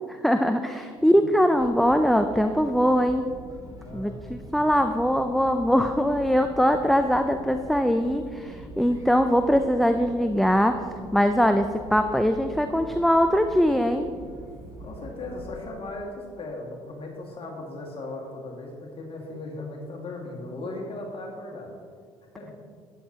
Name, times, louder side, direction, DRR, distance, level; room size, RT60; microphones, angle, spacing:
voice 1, 0.1-3.2 3.9-10.8 11.1-14.1, equal, ahead, 7 dB, 0.5 m, -22 dB
sound 1, 1.6-15.6, right 1 dB, 20° right, 2.9 m, -44 dB
voice 2, 3.8-4.4 14.8-21.7 22.4-22.5, left 2 dB, 35° left, -1 dB, 2.1 m, -37 dB
12.5 x 9.7 x 3.0 m, 2.1 s
hypercardioid pair, 55°, 16 cm